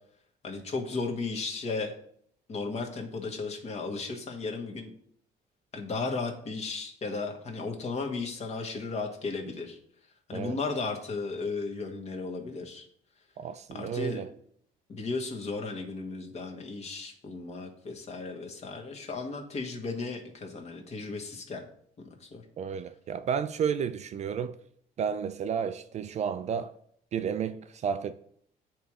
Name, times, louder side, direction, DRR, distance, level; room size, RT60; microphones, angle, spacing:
voice 1, 0.4-1.9 2.5-4.9 5.7-9.8 10.3-12.9 13.7-14.2 14.9-21.7 22.0-22.4, left 3 dB, 40° left, 1.4 m, -35 dB
voice 2, 13.4-14.3 22.6-24.6 25.0-26.8 27.1-28.1, right 7 dB, 40° right, 0.4 m, -32 dB
8.0 x 3.1 x 4.8 m
cardioid pair, 110°, 17 cm